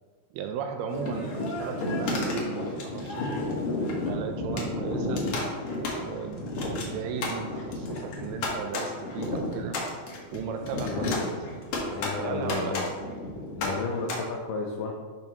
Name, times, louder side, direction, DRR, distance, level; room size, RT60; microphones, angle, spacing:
voice 1, 0.3-3.4 4.0-5.3 6.0-9.8 10.3-11.2 11.9-12.8, right 6 dB, 80° right, 5 dB, 2.4 m, -36 dB
sound 1, 0.9-14.2, left 2 dB, 60° left, 1.9 m, -32 dB
voice 2, 10.8-11.3 11.9-12.9 13.6-14.9, left 4 dB, 80° left, -1 dB, 1.9 m, -32 dB
10.5 x 6.0 x 3.0 m, 1.5 s
omnidirectional pair, 4.8 m